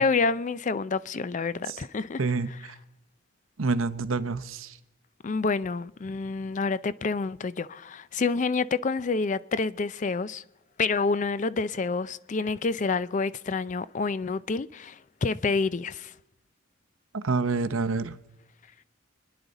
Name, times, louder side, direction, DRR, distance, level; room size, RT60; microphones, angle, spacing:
voice 1, 0.0-2.2 5.2-10.4 10.8-16.1, left 4 dB, 40° left, 0.4 m, -28 dB
voice 2, 2.2-2.5 3.6-4.7 17.1-18.2, right 4 dB, 90° right, 0.8 m, -27 dB
25.0 x 10.5 x 4.0 m
head